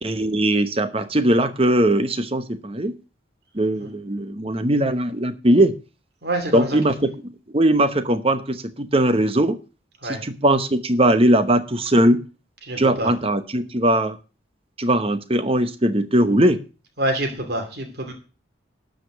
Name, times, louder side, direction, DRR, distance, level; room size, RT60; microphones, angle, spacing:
voice 1, 0.0-3.0 3.5-5.7 6.5-9.6 10.0-12.2 12.8-14.2 14.8-16.6, right 1 dB, 30° right, 11 dB, 0.9 m, -20 dB
voice 2, 6.2-6.8 10.0-10.2 12.6-13.1 17.0-18.1, right 1 dB, 55° right, 3 dB, 2.6 m, -26 dB
12.5 x 5.2 x 7.9 m, 0.34 s
head